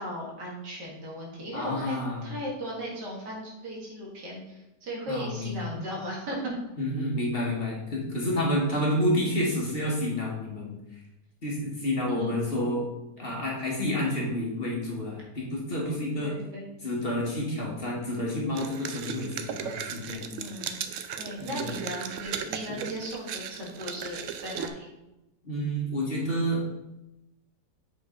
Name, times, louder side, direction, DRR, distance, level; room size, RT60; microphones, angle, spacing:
voice 1, 0.0-6.4 12.1-12.3 16.2-16.7 20.2-20.8 21.2-24.9, equal, 85° right, -3 dB, 2.5 m, -37 dB
voice 2, 1.5-2.3 5.1-5.7 6.8-10.8 11.4-12.8 13.2-16.3 16.8-20.3 21.4-21.6 25.4-26.6, left 1 dB, 35° left, -3 dB, 1.7 m, -29 dB
sound 1, 18.5-24.7, right 8 dB, 70° right, 0.8 m, -36 dB
7.7 x 5.1 x 3.8 m, 0.95 s
omnidirectional pair, 1.8 m